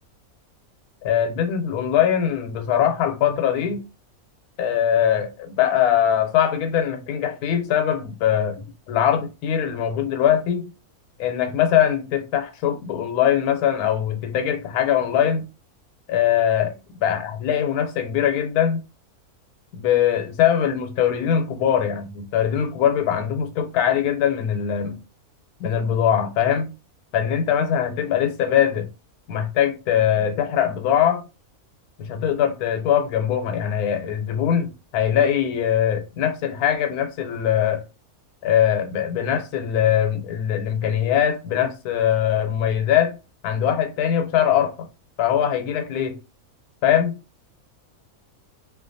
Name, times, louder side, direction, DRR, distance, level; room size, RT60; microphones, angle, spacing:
voice 1, 1.0-3.8 4.6-10.7 11.2-15.5 16.1-16.7 17.0-18.8 19.7-25.0 25.6-26.7 27.1-28.9 29.3-31.2 32.0-37.8 38.4-43.2 43.4-44.9 45.2-46.2 46.8-47.2, left 9 dB, 85° left, 1.1 m, -22 dB
2.4 x 2.2 x 2.5 m
omnidirectional pair, 1.6 m